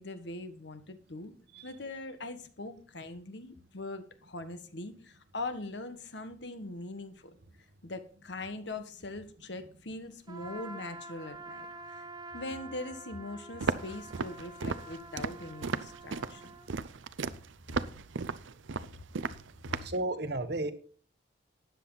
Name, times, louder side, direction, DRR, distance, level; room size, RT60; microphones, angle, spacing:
voice 1, 0.0-1.3 1.6-7.3 7.8-11.7 11.9-12.1 12.3-16.5, left 2 dB, 60° left, 10 dB, 1.4 m, -41 dB
Trumpet, 10.3-16.7, right 2 dB, 20° right, 1.0 m, -47 dB
Walk footsteps, 13.6-20.0, right 4 dB, 75° right, 0.6 m, -35 dB
voice 2, 19.8-20.7, right 2 dB, 55° right, 10 dB, 1.1 m, -33 dB
13.0 x 9.6 x 4.0 m, 0.42 s
head